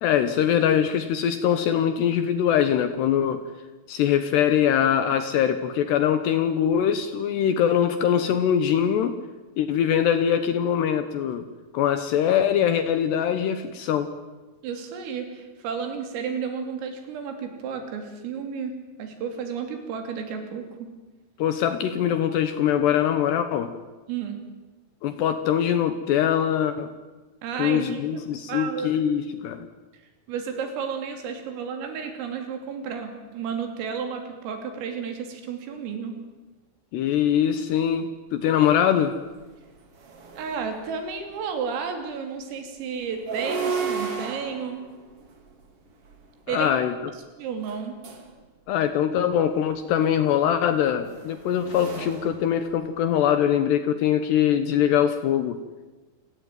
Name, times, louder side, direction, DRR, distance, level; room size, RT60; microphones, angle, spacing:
voice 1, 0.0-3.4 3.9-9.2 9.6-11.5 11.7-14.1 21.4-23.7 25.0-26.9 27.6-29.7 36.9-39.1 46.5-46.9 48.7-55.6, left 9 dB, 70° left, 10 dB, 2.7 m, -22 dB
voice 2, 14.6-20.9 24.1-24.4 27.4-28.0 28.5-29.0 30.3-36.2 40.4-44.9 46.5-46.7 47.4-48.0, right 6 dB, 80° right, 6 dB, 5.7 m, -32 dB
sound 1, 38.7-38.8 39.2-41.2 43.0-46.3 47.6-48.3 49.8-53.2, right 5 dB, 40° right, 2.4 m, -35 dB
28.5 x 17.5 x 9.4 m, 1.2 s
omnidirectional pair, 5.9 m